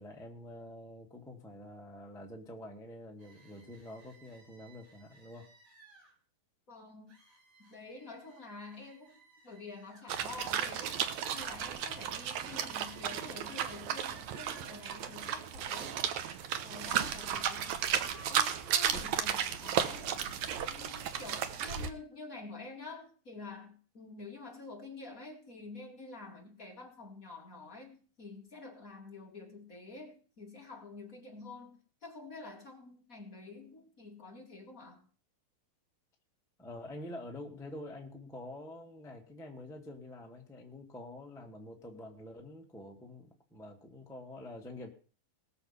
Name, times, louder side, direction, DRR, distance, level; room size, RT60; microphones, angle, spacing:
voice 1, 0.0-5.5 11.9-12.0 17.3-17.4 18.9-19.1 36.6-44.9, left 1 dB, ahead, 0 dB, 0.6 m, -47 dB
sound 1, 3.2-6.1 7.1-10.1 11.3-13.7 17.1-18.3, right 2 dB, 55° right, 7.0 m, -60 dB
voice 2, 6.7-7.1 7.6-9.2 9.4-11.0 11.3-16.0 16.6-17.7 18.3-20.1 20.7-35.0, left 3 dB, 30° left, 0 dB, 1.6 m, -48 dB
sound 2, 10.1-21.9, right 9 dB, 70° right, 1.7 m, -34 dB
19.5 x 6.9 x 5.7 m, 0.39 s
omnidirectional pair, 4.3 m